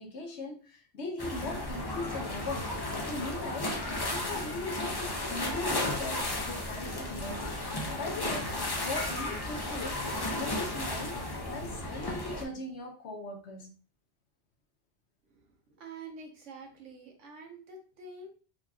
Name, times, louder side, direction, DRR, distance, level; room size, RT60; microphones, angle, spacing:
voice 1, 0.0-2.7 3.0-3.7 4.1-7.6 8.0-8.5 8.8-11.2 11.5-13.7, left 2 dB, 65° left, 1 dB, 1.1 m, -39 dB
sound 1, 1.2-12.4, left 2 dB, 30° left, 0.5 m, -34 dB
voice 2, 15.7-18.3, right 3 dB, 85° right, 2 dB, 1.2 m, -47 dB
4.0 x 3.0 x 2.3 m, 0.38 s
omnidirectional pair, 1.2 m